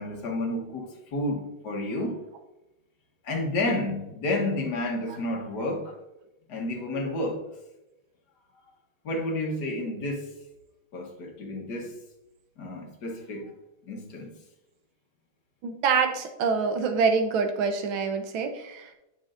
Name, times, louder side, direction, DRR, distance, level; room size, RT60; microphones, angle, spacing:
voice 1, 0.0-2.2 3.2-5.9 6.5-7.4 9.0-10.3 10.9-11.9 12.6-13.5 13.8-14.3, left 1 dB, 60° left, 1 dB, 1.7 m, -30 dB
voice 2, 15.6-18.9, right 5 dB, 85° right, 6 dB, 1.7 m, -26 dB
9.8 x 6.2 x 2.5 m, 0.94 s
omnidirectional pair, 2.2 m